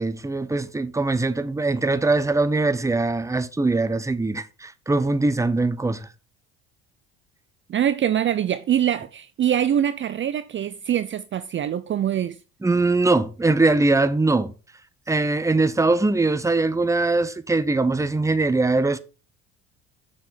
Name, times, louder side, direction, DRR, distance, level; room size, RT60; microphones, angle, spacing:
voice 1, 0.0-6.1 12.6-14.5 15.1-19.0, right 3 dB, 10° right, 0.9 m, -22 dB
voice 2, 7.7-12.4, right 10 dB, 35° right, 0.6 m, -24 dB
7.4 x 5.9 x 6.0 m
hypercardioid pair, 70°, 34 cm